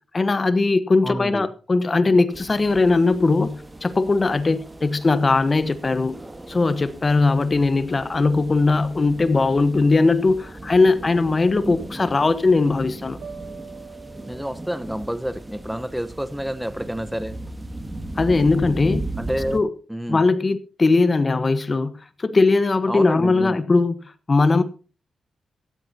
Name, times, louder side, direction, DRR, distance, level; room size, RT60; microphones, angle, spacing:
voice 1, 0.1-6.2 6.5-13.2 18.2-19.1 19.5-19.7 20.1-23.9 24.3-24.6, left 3 dB, 40° left, 1.2 m, -19 dB
voice 2, 1.0-1.5 14.3-17.3 19.2-19.6 19.9-20.2 22.9-23.6, equal, 5° right, 1.1 m, -29 dB
sound 1, 2.3-19.6, right 1 dB, 20° right, 2.3 m, -37 dB
sound 2, 13.2-16.3, right 6 dB, 75° right, 1.7 m, -44 dB
15.5 x 15.0 x 2.9 m
supercardioid pair, 45°, 0 cm